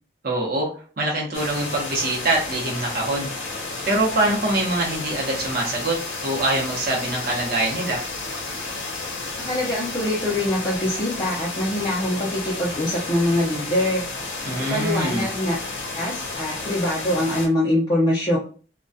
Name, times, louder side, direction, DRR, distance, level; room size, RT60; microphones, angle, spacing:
voice 1, 0.2-0.7 1.0-3.3 3.8-8.0 14.4-15.3, right 2 dB, 50° right, -3 dB, 0.7 m, -24 dB
sound 1, 1.3-17.5, left 3 dB, 80° left, 0.6 m, -32 dB
voice 2, 9.4-14.0 14.7-15.6 15.9-18.4, left 1 dB, 25° left, -6 dB, 0.5 m, -23 dB
2.2 x 2.2 x 2.5 m, 0.39 s
head